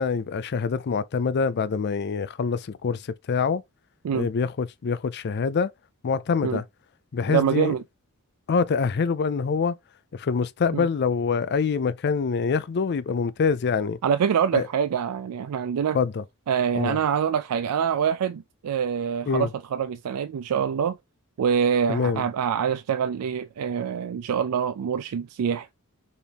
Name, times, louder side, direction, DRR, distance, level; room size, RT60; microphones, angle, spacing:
voice 1, 0.0-3.0 3.3-3.6 4.1-5.7 6.0-6.6 7.1-7.7 8.5-9.8 10.1-14.0 14.5-14.7 15.9-16.2 16.7-17.0 19.3-19.5 21.9-22.2, left 5 dB, 50° left, 0.4 m, -25 dB
voice 2, 7.3-7.8 10.7-10.9 14.0-16.0 16.5-21.0 21.4-25.7, right 7 dB, 85° right, 0.4 m, -25 dB
4.3 x 3.5 x 3.4 m
head